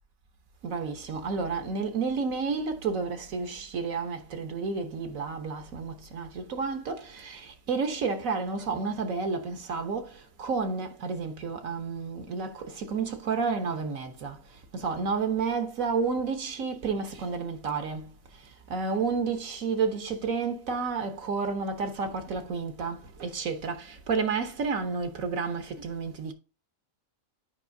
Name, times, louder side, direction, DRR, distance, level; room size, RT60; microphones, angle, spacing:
voice 1, 0.6-10.1 10.4-14.4 14.7-18.1 18.7-26.3, right 5 dB, 75° right, 1.5 m, -31 dB
8.3 x 5.4 x 2.7 m
omnidirectional pair, 1.4 m